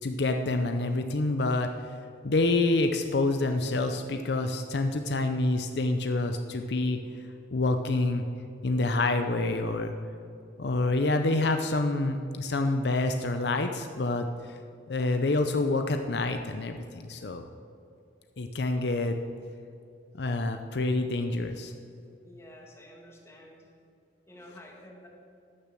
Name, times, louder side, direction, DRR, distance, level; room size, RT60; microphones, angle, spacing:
voice 1, 0.0-1.7 2.2-7.0 7.5-8.2 8.6-9.9 10.6-14.6 14.9-17.4 18.4-19.2 20.2-21.7, left 2 dB, 65° left, 6 dB, 0.6 m, -27 dB
voice 2, 22.2-23.7 24.3-25.1, left 1 dB, 15° left, -1 dB, 1.8 m, -50 dB
12.5 x 7.0 x 7.6 m, 2.6 s
head